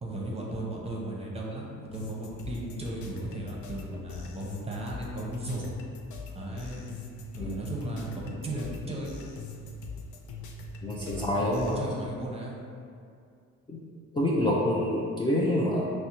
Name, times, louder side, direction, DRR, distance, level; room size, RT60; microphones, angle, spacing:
voice 1, 0.0-5.7 6.3-7.0 7.3-9.3 11.1-12.6, right 1 dB, 20° right, -3 dB, 0.7 m, -36 dB
sound 1, 1.9-11.8, left 3 dB, 70° left, 0.5 m, -42 dB
voice 2, 10.8-11.8 13.7-13.8 14.1-15.9, left 1 dB, 15° left, -6 dB, 0.4 m, -27 dB
5.0 x 2.1 x 2.9 m, 2.3 s
cardioid pair, 90°, 30 cm